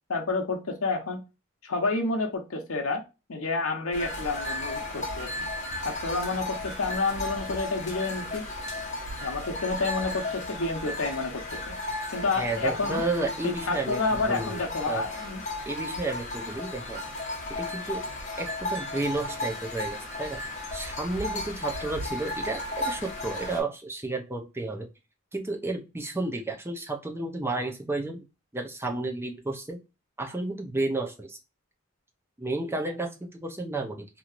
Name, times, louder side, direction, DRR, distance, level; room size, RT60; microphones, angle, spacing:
voice 1, 0.1-1.2 1.6-3.0 3.3-5.5 5.8-8.4 9.2-11.7 12.1-13.0 13.4-15.4, left 3 dB, 85° left, 4 dB, 0.9 m, -29 dB
sound 1, 3.9-23.6, left 2 dB, 35° left, 1.0 m, -35 dB
voice 2, 12.4-14.6 14.9-15.0 15.7-17.0 17.6-18.0 18.4-20.4 20.7-24.9 25.3-28.2 28.5-29.8 30.2-31.4 32.4-34.1, right 2 dB, 10° right, 3 dB, 0.6 m, -32 dB
3.0 x 2.7 x 2.4 m, 0.27 s
head